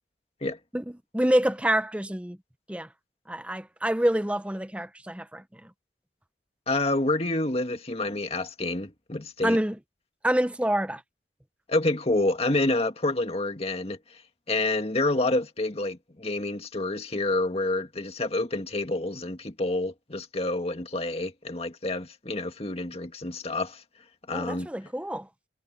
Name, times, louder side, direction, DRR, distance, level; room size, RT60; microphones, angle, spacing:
voice 1, 1.1-2.4 2.7-2.9 3.3-5.4 9.4-9.8 10.2-11.0 24.3-25.3, right 1 dB, 5° right, 0.7 m, -26 dB
voice 2, 6.7-9.6 11.7-14.2 14.5-23.8 24.3-24.7, left 2 dB, 35° left, 2.0 m, -28 dB
head